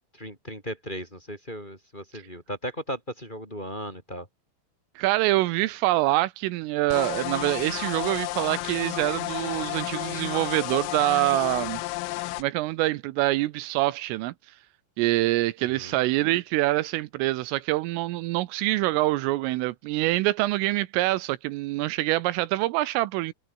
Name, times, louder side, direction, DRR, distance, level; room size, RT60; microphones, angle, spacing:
voice 1, 0.1-4.3 15.7-16.0, equal, 10° left, 4.8 m, -36 dB
voice 2, 5.0-11.8 12.4-14.3 15.0-23.3, right 18 dB, 85° right, 3.3 m, -25 dB
sound 1, 6.9-12.4, left 19 dB, 90° left, 3.5 m, -32 dB
omnidirectional pair, 6.0 m